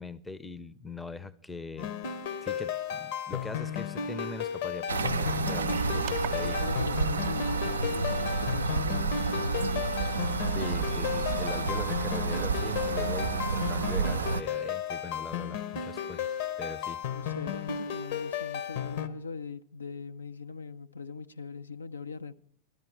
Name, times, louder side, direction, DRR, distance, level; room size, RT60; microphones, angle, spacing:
voice 1, 0.0-1.9 2.4-6.7 10.5-17.0, left 3 dB, 5° left, 0.6 m, -41 dB
sound 1, 1.8-19.1, left 8 dB, 55° left, 0.9 m, -34 dB
sound 2, 4.9-14.4, right 4 dB, 75° right, 0.5 m, -30 dB
sound 3, 5.6-14.3, right 12 dB, 40° right, 0.8 m, -41 dB
voice 2, 6.3-10.0 17.1-22.3, left 5 dB, 75° left, 0.5 m, -40 dB
14.0 x 12.5 x 4.7 m
figure-of-eight pair, 90°, 0 cm